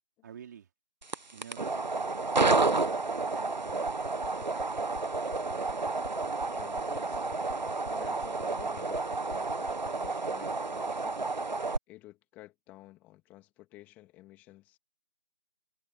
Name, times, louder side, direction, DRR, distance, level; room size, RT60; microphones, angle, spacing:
voice 1, 0.2-0.7 1.3-4.7, right 8 dB, 15° right, 3.6 m, -51 dB
sound 1, 1.0-11.8, right 3 dB, 45° right, 1.5 m, -30 dB
sound 2, 3.6-10.1, left 4 dB, 35° left, 4.8 m, -49 dB
voice 2, 6.4-7.2 7.8-11.3 11.9-14.8, left 17 dB, 5° left, 2.6 m, -53 dB
figure-of-eight pair, 165°, 32 cm